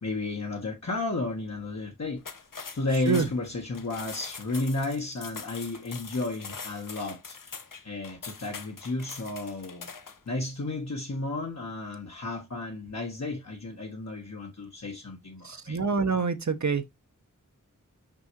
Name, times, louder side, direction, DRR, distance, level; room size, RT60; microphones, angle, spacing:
voice 1, 0.0-2.2 2.7-7.4 7.8-9.9 10.3-15.8, left 2 dB, 55° left, 1.4 m, -33 dB
sound 1, 2.2-10.3, left 5 dB, 80° left, 1.1 m, -43 dB
voice 2, 2.9-3.3 15.4-16.8, right 5 dB, 60° right, 1.0 m, -26 dB
6.0 x 5.5 x 3.1 m
wide cardioid pair, 80°, 32 cm